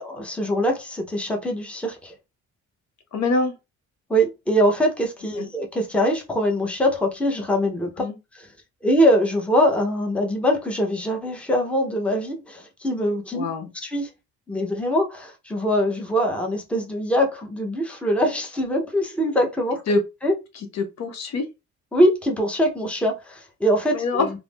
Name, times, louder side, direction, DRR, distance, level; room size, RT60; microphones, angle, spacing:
voice 1, 0.0-2.1 4.1-8.1 8.3-8.5 8.8-13.5 13.8-14.1 14.5-19.8 20.2-20.3 21.9-24.3, equal, 5° left, 0.7 m, -23 dB
voice 2, 3.1-3.5 5.4-5.5 8.0-8.2 13.3-13.7 19.9-20.0 20.5-21.5 23.9-24.3, left 3 dB, 60° left, 0.7 m, -24 dB
2.5 x 2.0 x 3.5 m
cardioid pair, 90°, 30 cm